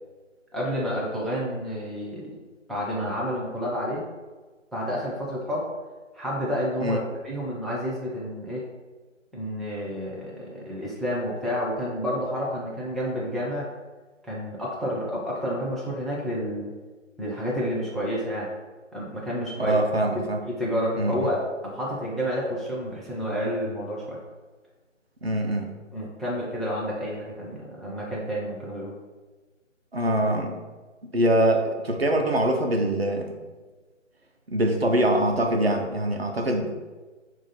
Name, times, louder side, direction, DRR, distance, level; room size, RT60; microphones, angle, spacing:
voice 1, 0.5-2.3 2.7-4.0 4.7-5.7 6.1-8.7 9.3-13.7 14.2-16.7 17.2-18.5 18.9-19.8 20.1-24.2 25.9-28.9, equal, ahead, -6 dB, 0.4 m, -30 dB
voice 2, 19.6-20.4 21.0-21.1 25.2-25.7 29.9-30.6 31.1-33.4 34.5-37.0, right 1 dB, 50° right, 2 dB, 0.6 m, -24 dB
4.1 x 2.4 x 4.0 m, 1.3 s
figure-of-eight pair, 160°, 39 cm